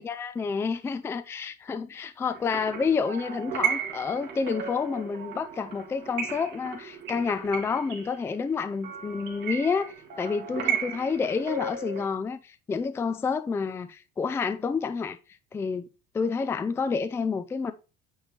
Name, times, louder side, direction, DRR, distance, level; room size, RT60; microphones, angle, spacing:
voice 1, 0.0-15.2 15.5-15.9 16.1-17.7, left 5 dB, 10° left, 0.3 m, -29 dB
sound 1, 2.3-12.0, right 7 dB, 55° right, 1.9 m, -35 dB
8.9 x 3.2 x 3.9 m
cardioid pair, 145°, 21 cm